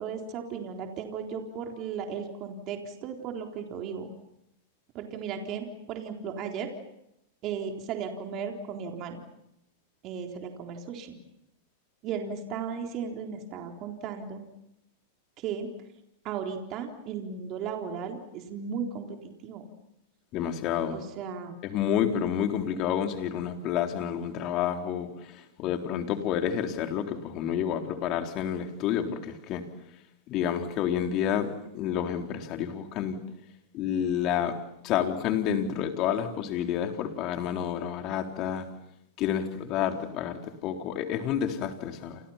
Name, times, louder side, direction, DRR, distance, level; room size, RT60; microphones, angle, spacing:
voice 1, 0.0-4.1 4.9-6.7 7.4-9.2 10.0-11.2 12.0-14.4 15.4-15.7 16.2-19.1 19.4-19.6 20.9-21.6, right 6 dB, 40° right, 3 dB, 3.9 m, -35 dB
voice 2, 20.3-21.0 21.6-25.1 25.6-29.6 30.3-31.5 31.7-33.2 33.7-34.6 34.8-38.7 39.2-42.2, left 9 dB, 45° left, 4 dB, 4.0 m, -29 dB
29.0 x 28.5 x 5.8 m, 0.82 s
hypercardioid pair, 115°, 0 cm